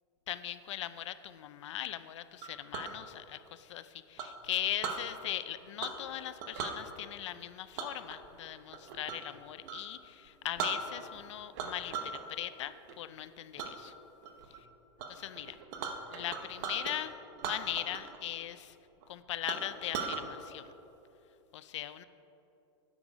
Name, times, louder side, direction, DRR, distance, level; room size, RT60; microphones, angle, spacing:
voice 1, 0.3-13.9 15.1-15.6 16.1-17.1 17.4-18.7 19.1-20.6 21.5-22.0, left 12 dB, 85° left, 13 dB, 0.5 m, -39 dB
Chink clink, 2.4-2.9 4.2-5.0 5.8-6.1 6.4-6.8 7.8-9.3 9.6-9.8 10.3-10.4 10.6-11.2 11.6-12.2 12.6-12.9 13.6-13.7 14.2-14.6 15.0-15.1 15.3-17.0 17.4-18.2 18.4-18.5 19.0-19.1 19.5-20.2, right 6 dB, 40° right, 0.8 m, -38 dB
9.9 x 7.1 x 5.0 m, 2.9 s
supercardioid pair, 175°, 15 cm